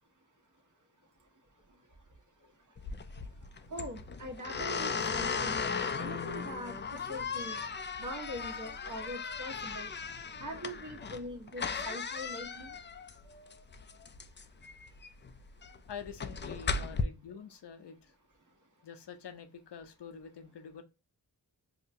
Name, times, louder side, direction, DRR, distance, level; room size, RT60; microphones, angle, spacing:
sound 1, 2.8-17.0, left 5 dB, 25° left, 0.4 m, -37 dB
voice 1, 3.7-7.6 8.0-9.9 10.4-12.7, equal, 45° right, 3 dB, 1.2 m, -42 dB
voice 2, 15.9-18.1 18.8-20.8, left 7 dB, 70° left, 8 dB, 0.7 m, -46 dB
4.8 x 2.2 x 2.6 m, 0.29 s
cardioid pair, 40°, 42 cm